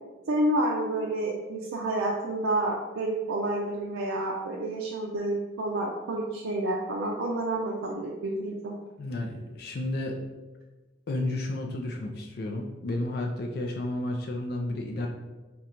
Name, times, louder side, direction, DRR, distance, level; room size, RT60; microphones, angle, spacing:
voice 1, 0.3-8.7, right 1 dB, 85° right, -2 dB, 0.5 m, -29 dB
voice 2, 9.0-10.2 11.1-15.1, left 1 dB, 50° left, 1 dB, 0.4 m, -32 dB
4.2 x 2.3 x 3.8 m, 1.2 s
head